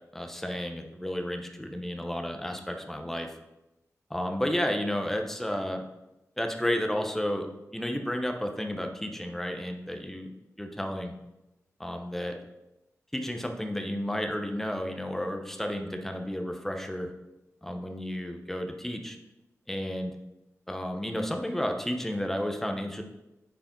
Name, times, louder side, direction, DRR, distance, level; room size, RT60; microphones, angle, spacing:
voice 1, 0.1-3.3 4.1-5.8 6.4-7.5 7.7-10.3 10.6-11.1 11.8-12.4 13.1-17.1 17.6-19.2 19.7-20.1 20.7-23.0, equal, 5° left, 4 dB, 0.8 m, -32 dB
9.1 x 4.8 x 4.4 m, 0.96 s
wide cardioid pair, 125°, 6 cm